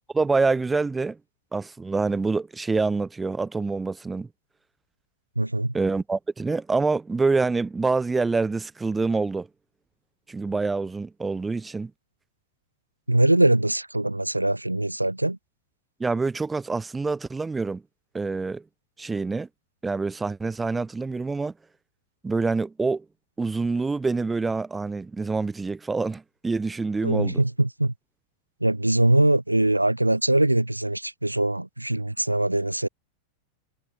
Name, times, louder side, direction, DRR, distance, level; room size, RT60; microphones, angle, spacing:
voice 1, 0.1-1.2 1.5-4.3 5.7-9.5 10.3-11.9 16.0-17.8 18.1-18.6 19.0-19.5 19.8-21.5 22.2-23.1 23.4-27.4, right 3 dB, 10° right, 1.7 m, -26 dB
voice 2, 5.4-5.7 13.1-15.4 27.0-27.9 28.6-32.9, right 1 dB, 85° right, 2.0 m, -22 dB
figure-of-eight pair, 90°, 0 cm